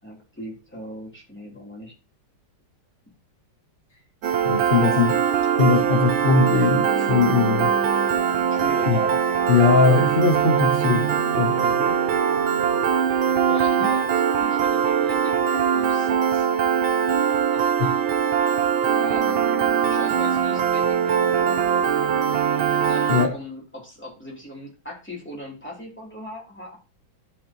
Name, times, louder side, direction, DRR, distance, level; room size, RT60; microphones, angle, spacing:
voice 1, 0.0-1.9 4.7-5.2 8.5-9.0 11.6-12.0 13.5-16.5 19.0-21.9 22.9-26.8, equal, 5° left, -3 dB, 3.3 m, -38 dB
Piano, 4.2-23.3, right 8 dB, 85° right, 1.7 m, -21 dB
voice 2, 4.4-5.1 5.6-7.7 8.9-9.0 9.5-11.1 11.4-11.6 17.5-17.9 23.1-23.3, left 5 dB, 40° left, 3 dB, 0.8 m, -20 dB
13.0 x 5.7 x 2.9 m, 0.30 s
omnidirectional pair, 2.2 m